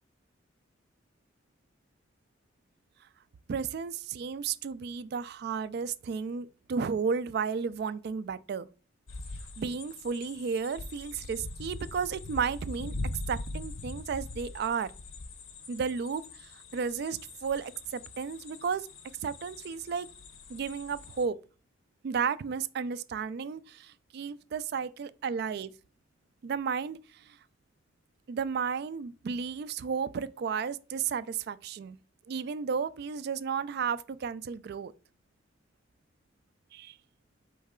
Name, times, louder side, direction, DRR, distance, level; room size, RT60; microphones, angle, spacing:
voice 1, 3.5-8.7 9.6-12.9 13.3-14.9 15.7-18.9 19.2-20.1 20.5-21.4 22.0-25.7 26.4-27.0 28.3-32.0 32.3-34.9 36.7-36.9, right 6 dB, 55° right, 0.3 m, -33 dB
sound 1, 9.1-21.2, left 2 dB, 80° left, 0.7 m, -42 dB
4.6 x 3.1 x 3.6 m
head